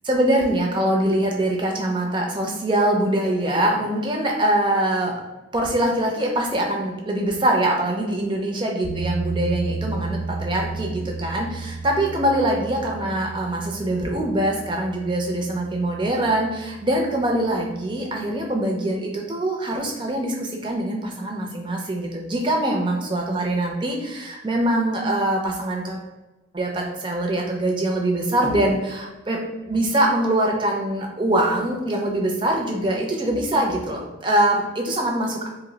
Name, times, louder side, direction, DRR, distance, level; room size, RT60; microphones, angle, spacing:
voice 1, 0.1-5.1 5.5-26.0 26.5-29.4 29.7-35.5, right 1 dB, 25° right, 0 dB, 0.4 m, -23 dB
sound 1, 8.8-17.8, right 3 dB, 90° right, 0.7 m, -33 dB
2.7 x 2.0 x 3.8 m, 1.1 s
head